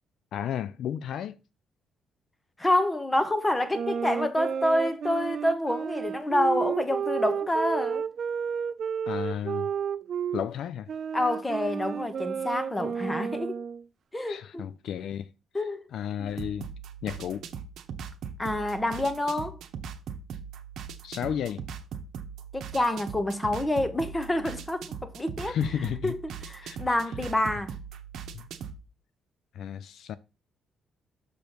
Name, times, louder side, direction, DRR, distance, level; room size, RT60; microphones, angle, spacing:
voice 1, 0.3-1.4 9.1-9.7 10.3-10.9 14.3-15.3 15.9-16.7 17.0-17.5 21.0-21.6 25.5-26.1 26.6-26.8 28.3-28.5 29.5-30.2, left 9 dB, 75° left, 0.4 m, -32 dB
voice 2, 2.6-8.0 11.1-13.6 14.1-14.7 15.5-15.8 16.2-16.3 18.4-19.6 22.5-25.6 26.0-26.1 26.4-27.7, left 1 dB, 15° left, 1.2 m, -27 dB
sound 1, 3.7-10.4 10.9-13.8, right 7 dB, 55° right, 0.3 m, -32 dB
sound 2, 16.3-28.8, right 7 dB, 75° right, 0.9 m, -40 dB
6.5 x 5.1 x 4.4 m
cardioid pair, 90°, 0 cm